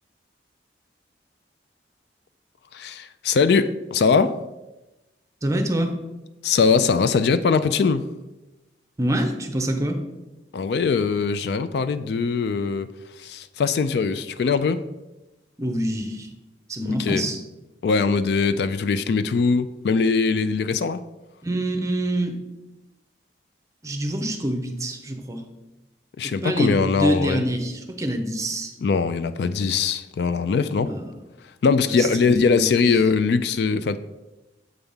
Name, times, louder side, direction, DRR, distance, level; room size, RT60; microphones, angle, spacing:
voice 1, 2.7-4.4 6.4-8.1 10.5-12.9 13.2-14.8 17.0-17.2 17.8-21.0 26.2-27.4 28.8-30.9 31.6-34.0, left 5 dB, 65° left, 0.3 m, -21 dB
voice 2, 5.4-5.9 9.0-10.0 15.6-16.3 16.7-17.4 21.4-22.4 23.8-25.4 26.2-28.7 30.8-31.1 31.9-32.9, right 1 dB, 20° right, 0.7 m, -26 dB
7.8 x 3.5 x 5.5 m
head